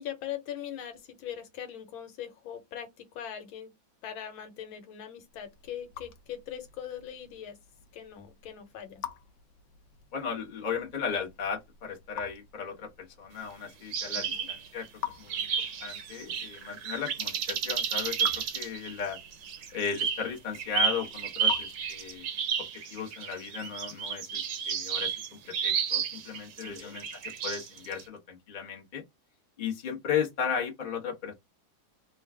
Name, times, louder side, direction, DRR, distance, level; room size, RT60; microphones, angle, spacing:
voice 1, 0.0-3.7 4.0-7.6 7.9-9.0 14.1-14.5 26.6-27.0, left 9 dB, 90° left, 1.6 m, -41 dB
Raindrop / Drip, 5.2-22.4, left 9 dB, 70° left, 1.1 m, -47 dB
voice 2, 10.1-14.9 15.2-19.2 19.7-22.2 22.9-29.0 29.6-31.3, left 7 dB, 35° left, 0.8 m, -36 dB
sound 1, 13.9-14.9 15.3-28.0, right 7 dB, 70° right, 1.3 m, -32 dB
3.4 x 2.4 x 3.2 m
omnidirectional pair, 2.1 m